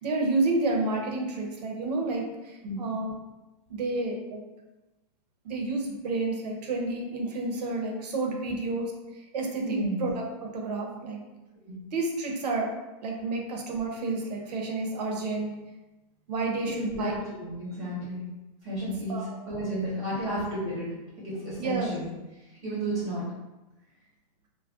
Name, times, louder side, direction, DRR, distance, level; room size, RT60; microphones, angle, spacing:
voice 1, 0.0-3.1 3.7-4.4 5.4-11.2 11.9-12.7 13.0-15.5 16.3-17.1 18.8-19.2 20.2-20.4 21.6-21.9, right 3 dB, 70° right, 1 dB, 0.7 m, -30 dB
voice 2, 9.6-10.0 11.6-11.7 16.7-18.2 18.6-20.9 21.2-22.0 22.6-23.2, right 1 dB, 15° right, -8 dB, 0.9 m, -32 dB
2.4 x 2.2 x 3.4 m, 1.1 s
hypercardioid pair, 155°, 21 cm